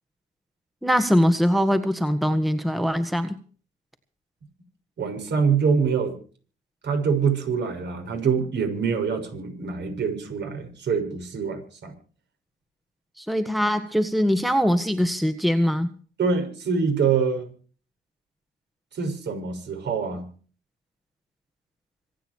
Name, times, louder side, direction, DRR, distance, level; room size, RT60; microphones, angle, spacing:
voice 1, 0.8-3.4 13.2-15.9, equal, ahead, 9 dB, 1.5 m, -22 dB
voice 2, 5.0-6.1 6.8-11.9 16.2-17.5 18.9-20.3, right 6 dB, 60° right, 5 dB, 6.4 m, -25 dB
26.0 x 9.3 x 4.7 m, 0.41 s
cardioid pair, 90°, 20 cm